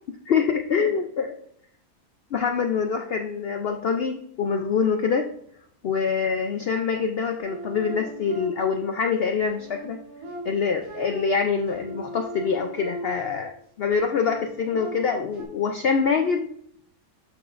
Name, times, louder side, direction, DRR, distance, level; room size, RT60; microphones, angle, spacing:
voice 1, 0.1-1.3 2.3-5.3 5.8-10.0 10.4-13.5 13.8-16.5, left 5 dB, 75° left, 5 dB, 0.5 m, -25 dB
sound 1, 7.4-8.9 9.4-13.4 13.9-15.4, equal, 65° right, 2.5 m, -38 dB
11.5 x 6.1 x 2.5 m, 0.68 s
omnidirectional pair, 1.7 m